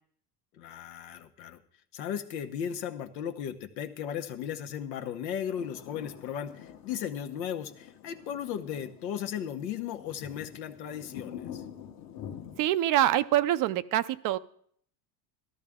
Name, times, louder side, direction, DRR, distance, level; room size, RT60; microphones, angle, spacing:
voice 1, 0.6-1.6 1.9-11.6, left 9 dB, 85° left, 5 dB, 1.2 m, -36 dB
sound 1, 5.6-12.6, left 9 dB, 45° left, 1.2 m, -46 dB
voice 2, 12.6-14.4, right 13 dB, 45° right, 15 dB, 0.5 m, -25 dB
13.5 x 12.5 x 3.6 m, 0.63 s
supercardioid pair, 100°, 49 cm